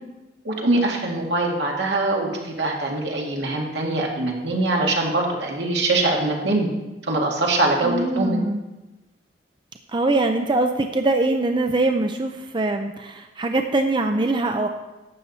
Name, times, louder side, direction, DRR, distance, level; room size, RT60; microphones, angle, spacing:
voice 1, 0.4-6.7 7.1-8.4, right 2 dB, 80° right, -1 dB, 2.0 m, -23 dB
voice 2, 7.8-8.6 9.9-14.7, right 2 dB, 25° right, 5 dB, 0.5 m, -22 dB
12.0 x 8.3 x 4.1 m, 1.1 s
head